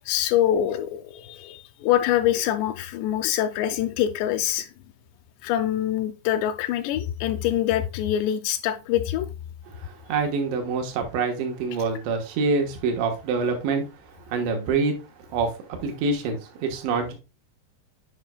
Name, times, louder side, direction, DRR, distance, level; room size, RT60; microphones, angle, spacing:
voice 1, 0.1-4.7 5.4-9.3, left 11 dB, 85° left, 2.7 m, -24 dB
voice 2, 9.7-13.9 14.1-15.0 15.3-17.1, right 4 dB, 85° right, 3.5 m, -26 dB
9.7 x 5.3 x 2.2 m
omnidirectional pair, 5.1 m